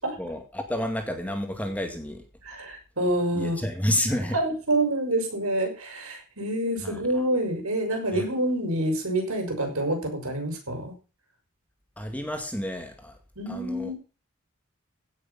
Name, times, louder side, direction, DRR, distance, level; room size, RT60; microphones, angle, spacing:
voice 1, 0.2-2.2 3.3-4.4 6.8-7.0 8.1-8.3 12.0-13.2 13.5-13.9, left 1 dB, 5° left, 5 dB, 2.0 m, -30 dB
voice 2, 2.4-3.7 4.3-10.9 13.4-13.9, right 1 dB, 85° right, 4 dB, 5.7 m, -27 dB
16.5 x 6.8 x 5.5 m, 0.34 s
head